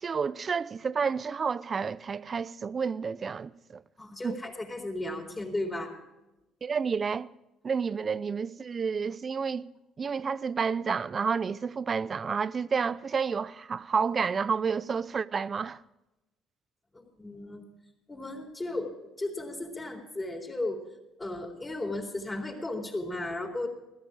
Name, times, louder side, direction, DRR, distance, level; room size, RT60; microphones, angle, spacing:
voice 1, 0.0-3.8 4.2-4.4 6.6-7.3 7.6-9.7 10.0-15.8, right 5 dB, 40° right, 0.5 m, -30 dB
voice 2, 4.0-5.9 16.9-17.6 18.1-20.8 21.2-23.7, left 2 dB, 20° left, 3.9 m, -35 dB
16.0 x 13.5 x 5.0 m
supercardioid pair, 80°, 0 cm